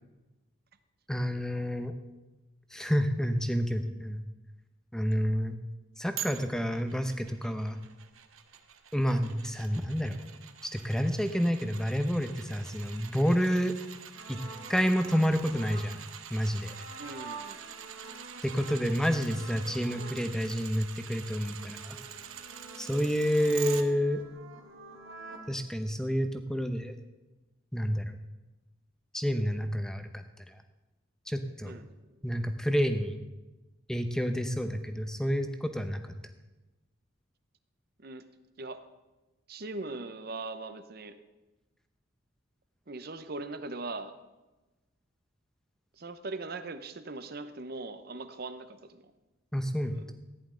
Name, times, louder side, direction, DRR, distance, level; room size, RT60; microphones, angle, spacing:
voice 1, 1.1-1.9 2.7-4.2 4.9-5.6 6.0-7.8 8.9-10.2 10.7-13.7 14.3-14.4 14.7-15.9 16.3-16.7 18.4-22.0 22.8-24.2 25.5-26.9 27.7-28.0 29.1-30.2 31.3-31.7 32.2-33.2 33.9-36.0 49.5-50.0, equal, 5° left, 7 dB, 0.7 m, -29 dB
sound 1, 6.2-23.8 24.3-24.4, right 9 dB, 90° right, 0.9 m, -46 dB
sound 2, 14.1-20.3 20.7-25.5, right 3 dB, 65° right, 1.6 m, -48 dB
voice 2, 17.0-17.7 31.7-31.9 38.0-38.2 38.6-38.8 39.5-41.2 42.9-44.1 46.0-49.0 49.9-50.1, right 3 dB, 50° right, 10 dB, 0.7 m, -40 dB
14.5 x 10.5 x 3.8 m, 1.1 s
head